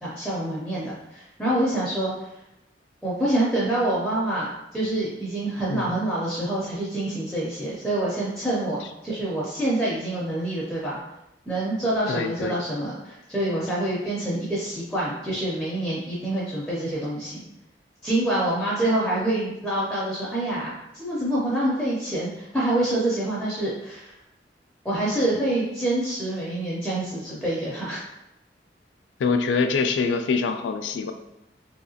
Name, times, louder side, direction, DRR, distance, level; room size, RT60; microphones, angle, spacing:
voice 1, 0.0-2.3 3.0-4.5 4.7-11.0 11.5-17.4 18.0-24.1 24.8-28.0, right 1 dB, 5° left, -7 dB, 0.5 m, -26 dB
voice 2, 12.1-12.6 29.2-31.1, left 4 dB, 85° left, 7 dB, 0.3 m, -25 dB
3.0 x 2.8 x 2.7 m, 0.88 s
head